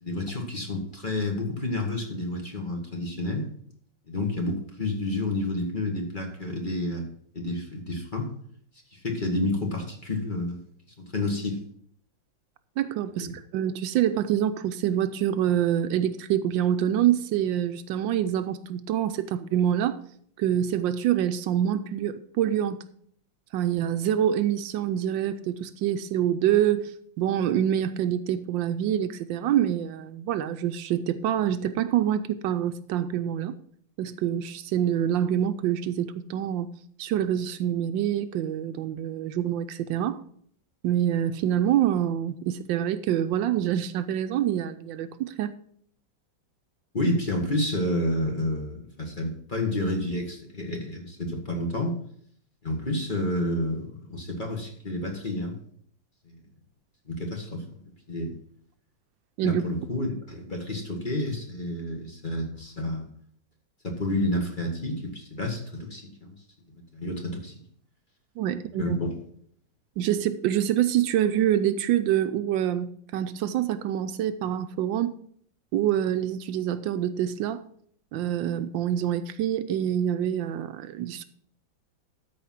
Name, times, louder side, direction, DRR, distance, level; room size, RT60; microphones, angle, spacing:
voice 1, 0.0-3.5 4.1-7.1 7.3-8.3 8.9-10.6 11.1-11.6 13.2-13.3 46.9-51.9 52.6-55.6 56.3-56.4 57.1-58.3 59.4-63.1 63.8-66.3 66.7-67.5 68.8-69.1, left 1 dB, 25° left, 1.7 m, -30 dB
voice 2, 12.8-20.0 20.4-22.8 23.5-33.6 34.0-36.7 37.0-40.2 40.8-45.6 59.4-59.6 68.4-69.0 70.0-75.2 75.7-77.6 78.1-81.2, right 10 dB, 75° right, 1.2 m, -26 dB
13.0 x 5.1 x 5.7 m
omnidirectional pair, 2.1 m